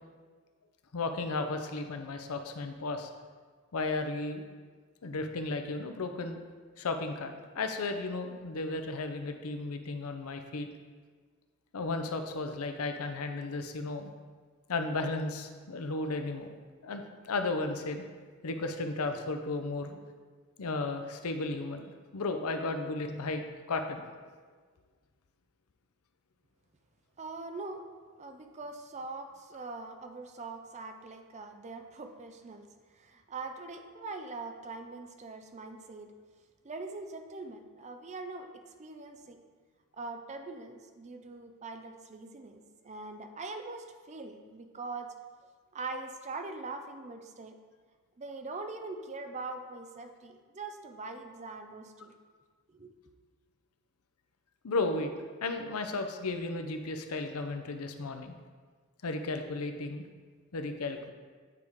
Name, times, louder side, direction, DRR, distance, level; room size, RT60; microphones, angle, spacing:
voice 1, 0.9-3.1 3.7-4.4 5.0-6.4 6.8-10.7 11.7-14.1 14.7-16.5 16.8-18.0 18.4-20.0 20.6-24.0 54.6-55.1 55.4-58.3 59.0-60.0 60.5-61.1, left 3 dB, 85° left, 6 dB, 0.6 m, -34 dB
voice 2, 27.2-27.8 28.2-32.6 32.9-36.1 36.6-38.5 38.8-39.4 40.0-45.1 45.7-47.6 48.2-52.1 52.7-52.9, right 3 dB, 30° right, 6 dB, 0.5 m, -42 dB
8.6 x 4.7 x 3.6 m, 1.5 s
head